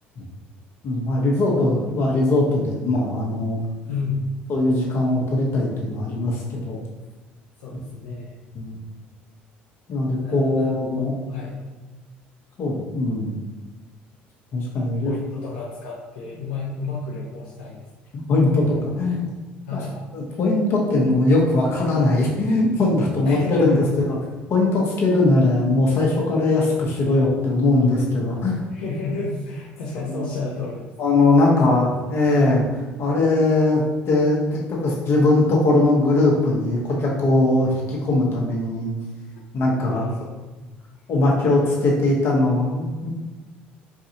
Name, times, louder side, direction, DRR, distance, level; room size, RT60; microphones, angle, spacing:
voice 1, 0.8-3.6 4.5-6.8 8.5-8.8 9.9-11.1 12.6-13.3 14.5-15.1 18.1-18.6 19.0-19.3 19.7-19.8 20.1-24.2 24.5-28.6 30.1-30.2 31.0-38.9 39.5-40.0 41.1-43.1, left 2 dB, 55° left, -2 dB, 1.3 m, -20 dB
voice 2, 3.9-4.2 7.6-8.3 10.2-11.6 15.0-17.8 18.5-19.1 19.6-20.0 23.2-24.0 28.7-31.9 39.8-40.3, left 3 dB, 85° left, -6 dB, 0.8 m, -31 dB
4.7 x 2.5 x 2.9 m, 1.2 s
supercardioid pair, 75°, 5 cm